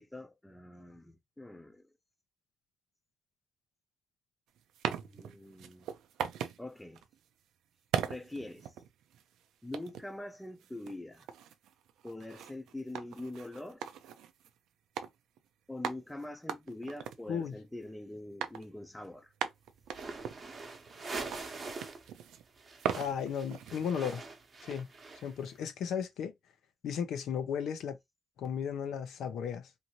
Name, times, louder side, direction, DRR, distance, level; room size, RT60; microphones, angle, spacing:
voice 1, 0.0-1.8 5.0-5.9 6.6-7.0 8.1-8.7 9.6-11.3 12.0-13.8 15.7-19.3, left 1 dB, 10° left, 0.6 m, -44 dB
sound 1, 4.6-6.6 6.9-7.2 7.9-9.2 9.7-10.1 10.6-14.5 15.0-15.1 15.4-15.5 15.8-18.0 18.4-18.7 19.0-19.1 19.4-21.1 21.3-22.4 22.8-24.2, right 9 dB, 90° right, 0.4 m, -39 dB
sound 2, 19.9-22.1 22.3-25.5, right 3 dB, 35° right, 0.8 m, -43 dB
voice 2, 22.9-24.2 24.6-24.9 25.2-26.3 26.8-28.0 28.4-29.7, left 7 dB, 80° left, 0.6 m, -35 dB
2.7 x 2.6 x 2.9 m
cardioid pair, 100°, 0 cm